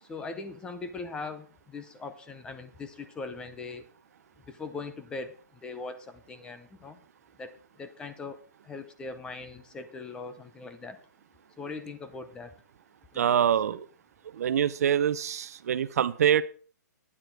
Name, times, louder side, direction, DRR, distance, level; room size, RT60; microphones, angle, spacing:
voice 1, 0.0-3.9 4.5-7.0 7.4-11.0 11.6-12.6 13.1-13.5, left 3 dB, 10° left, 9 dB, 0.7 m, -40 dB
voice 2, 13.2-13.9 14.3-16.4, right 9 dB, 55° right, 15 dB, 0.7 m, -25 dB
11.5 x 9.8 x 4.7 m, 0.41 s
hypercardioid pair, 160°, 10 cm